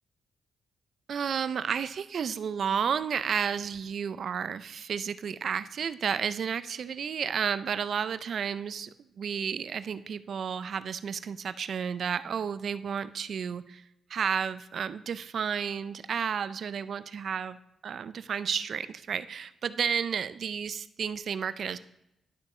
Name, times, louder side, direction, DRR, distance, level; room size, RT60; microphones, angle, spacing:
voice 1, 1.1-8.9 9.2-13.8 14.1-17.6 17.8-21.8, right 7 dB, 65° right, 14 dB, 0.4 m, -32 dB
11.0 x 6.1 x 3.2 m, 0.85 s
cardioid pair, 75°, 0 cm